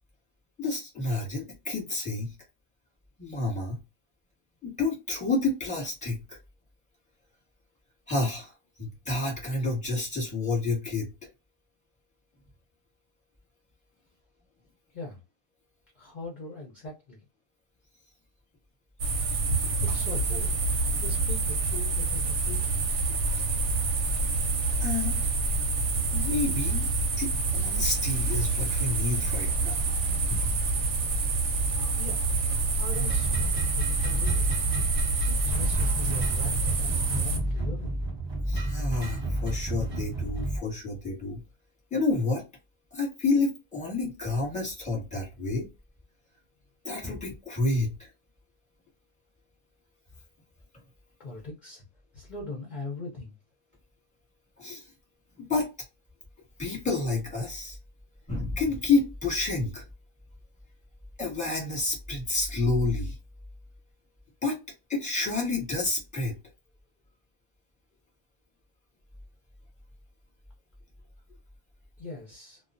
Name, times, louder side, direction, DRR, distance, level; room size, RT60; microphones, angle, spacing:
voice 1, 0.6-2.3 3.2-3.8 4.6-6.4 8.1-8.5 8.8-11.1 24.8-25.2 26.1-26.9 27.2-29.9 30.3-30.4 38.5-41.4 41.9-42.4 42.9-45.7 46.8-48.1 54.6-54.9 55.4-55.7 56.6-57.8 58.3-59.8 61.2-63.2 64.4-64.6 64.9-66.4, left 3 dB, 5° left, 0.9 m, -29 dB
voice 2, 16.0-17.2 19.8-20.6 21.0-23.1 31.9-32.3 32.8-34.6 35.2-38.0 51.2-51.8 52.1-53.3 72.0-72.6, left 2 dB, 55° left, 0.5 m, -41 dB
sound 1, 19.0-37.4, right 3 dB, 65° right, 0.8 m, -27 dB
sound 2, 32.9-40.6, right 1 dB, 20° right, 0.9 m, -31 dB
2.3 x 2.2 x 2.4 m
omnidirectional pair, 1.5 m